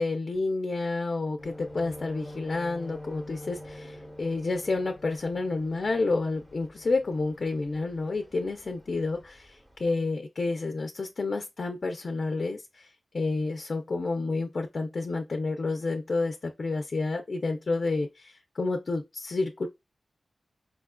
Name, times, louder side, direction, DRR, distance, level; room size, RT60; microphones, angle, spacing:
voice 1, 0.0-19.7, left 3 dB, 50° left, 0.5 m, -30 dB
sound 1, 1.4-7.9 8.2-8.5 8.9-9.4 9.8-9.9, left 1 dB, 20° right, 1.0 m, -45 dB
4.9 x 2.4 x 2.2 m
wide cardioid pair, 105°, 0 cm